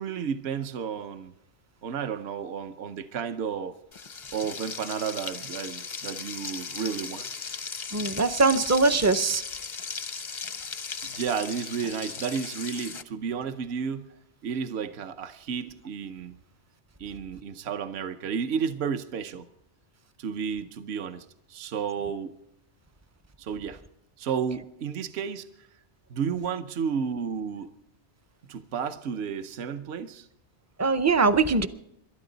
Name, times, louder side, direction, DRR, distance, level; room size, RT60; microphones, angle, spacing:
voice 1, 0.0-1.3 1.8-3.8 4.3-7.3 11.0-14.1 14.4-16.4 17.0-19.5 20.2-22.4 23.4-23.8 24.2-25.7 26.1-27.7 28.5-30.3, right 7 dB, 65° right, 8 dB, 1.0 m, -32 dB
Frying (food), 3.9-13.0, left 5 dB, 40° left, 0.5 m, -37 dB
voice 2, 7.9-9.4 30.8-31.7, right 4 dB, 25° right, 10 dB, 0.3 m, -22 dB
27.5 x 12.5 x 3.9 m, 0.82 s
omnidirectional pair, 1.2 m